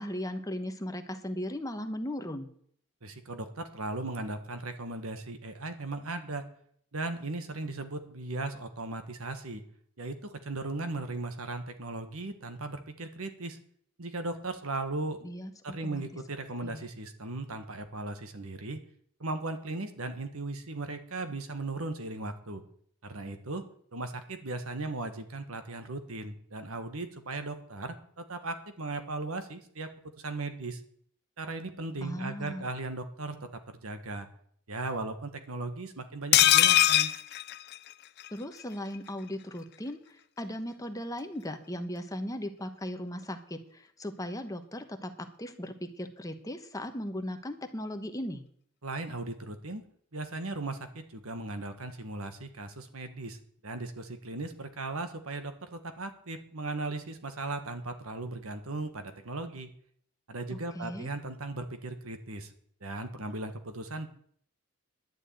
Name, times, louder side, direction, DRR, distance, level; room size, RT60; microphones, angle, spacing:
voice 1, 0.0-2.5 15.2-15.5 15.8-16.0 16.6-16.8 32.0-32.6 38.3-48.4 60.5-61.1, left 1 dB, 15° left, 7 dB, 1.1 m, -37 dB
voice 2, 3.0-6.5 6.9-9.6 10.0-13.6 14.0-15.3 15.6-18.8 19.2-22.6 23.0-23.6 23.9-29.9 30.2-30.8 31.4-34.3 34.7-37.1 48.8-49.8 50.1-53.4 53.6-59.7 60.3-62.5 62.8-64.1, right 2 dB, 80° right, 8 dB, 1.6 m, -37 dB
sound 1, 36.3-38.3 38.6-38.7 38.9-39.1, left 13 dB, 50° left, 0.4 m, -22 dB
11.0 x 7.2 x 9.3 m, 0.63 s
head